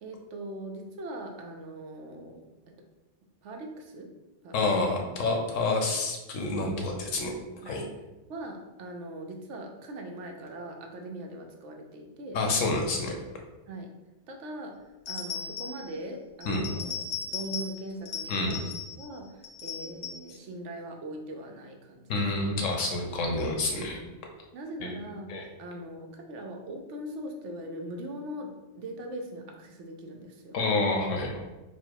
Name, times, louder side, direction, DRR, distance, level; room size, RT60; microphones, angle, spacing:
voice 1, 0.0-2.8 3.4-4.1 4.4-4.5 7.6-7.8 8.3-12.4 13.7-13.9 14.3-18.7 19.0-22.6 23.9-24.1 24.5-30.6, right 1 dB, 75° right, 2 dB, 1.0 m, -41 dB
voice 2, 4.5-7.3 7.6-7.8 12.3-13.2 16.4-16.6 18.3-18.6 22.1-24.0 24.8-25.0 25.3-25.5 30.5-31.4, left 2 dB, 90° left, 1 dB, 1.1 m, -28 dB
sound 1, 15.1-15.9 16.4-17.8 18.1-19.1 19.4-20.3, left 6 dB, 70° left, 0.9 m, -37 dB
4.4 x 2.0 x 4.6 m, 1.1 s
omnidirectional pair, 1.3 m